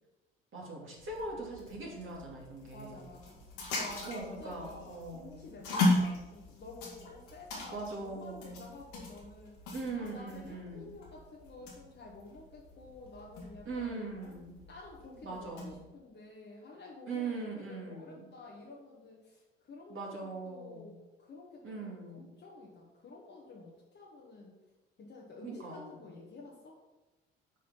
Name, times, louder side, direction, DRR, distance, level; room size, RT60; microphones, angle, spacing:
voice 1, 0.5-3.1 4.0-5.5 7.7-8.7 9.7-10.9 13.6-14.6 15.2-15.9 17.1-18.3 19.9-20.9 21.6-22.3 25.4-26.0, right 3 dB, 45° right, -3 dB, 2.7 m, -41 dB
sound 1, 1.0-15.8, left 2 dB, 70° left, 2.1 m, -38 dB
voice 2, 2.7-3.4 3.7-9.5 9.9-14.3 14.7-19.4 19.7-20.9 21.2-22.0 22.4-24.5 25.0-26.8, left 3 dB, 40° left, -3 dB, 1.5 m, -50 dB
8.2 x 4.2 x 5.6 m, 1.1 s
figure-of-eight pair, 50°, 29 cm